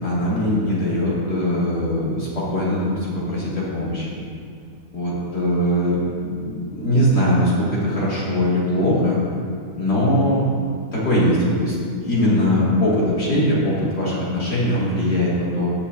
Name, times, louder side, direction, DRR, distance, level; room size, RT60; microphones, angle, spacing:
voice 1, 0.0-4.2 4.9-9.2 9.8-10.4 10.9-11.8 12.0-15.7, left 1 dB, 90° left, -8 dB, 3.1 m, -21 dB
17.0 x 7.0 x 2.7 m, 2.2 s
omnidirectional pair, 1.7 m